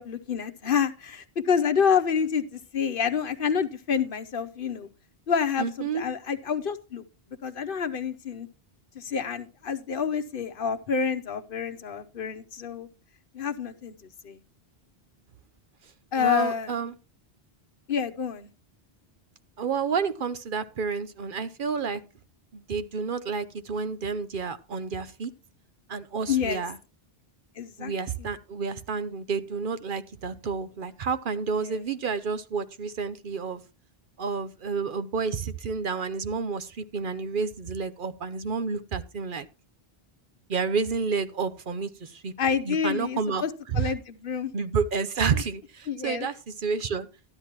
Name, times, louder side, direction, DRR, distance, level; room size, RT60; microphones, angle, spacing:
voice 1, 0.0-4.9 5.3-7.0 7.4-8.5 9.0-12.9 13.3-13.9 14.2-14.4 16.1-16.7 17.9-18.5 26.3-26.6 27.6-27.9 28.2-28.3 31.6-31.8 42.4-43.5 43.7-44.5 45.9-46.3, left 7 dB, 60° left, 10 dB, 1.0 m, -28 dB
voice 2, 5.6-6.1 16.2-16.9 19.6-22.0 22.5-25.3 25.9-26.8 27.8-33.6 34.2-39.5 40.5-42.3 42.6-43.4 43.7-43.9 44.5-47.1, right 5 dB, 60° right, 11 dB, 0.9 m, -30 dB
12.5 x 10.5 x 3.0 m, 0.31 s
omnidirectional pair, 1.0 m